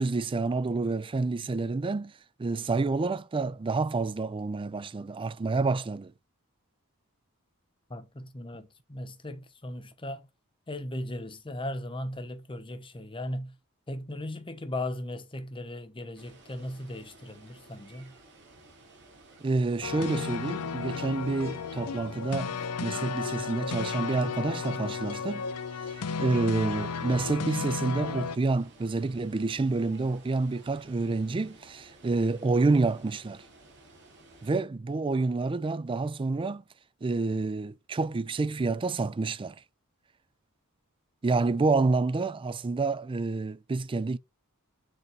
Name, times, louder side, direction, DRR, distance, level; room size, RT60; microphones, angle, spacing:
voice 1, 0.0-2.1 2.4-6.1 19.4-25.4 25.8-33.4 34.4-36.6 37.0-39.6 41.2-44.2, right 3 dB, 25° right, 0.4 m, -28 dB
voice 2, 7.9-10.3 10.7-13.6 13.9-18.1, left 1 dB, 25° left, 0.9 m, -37 dB
Water, 16.1-34.6, right 2 dB, 50° right, 2.9 m, -55 dB
sound 1, 19.8-28.4, left 5 dB, 85° left, 0.6 m, -34 dB
9.2 x 4.0 x 3.1 m
head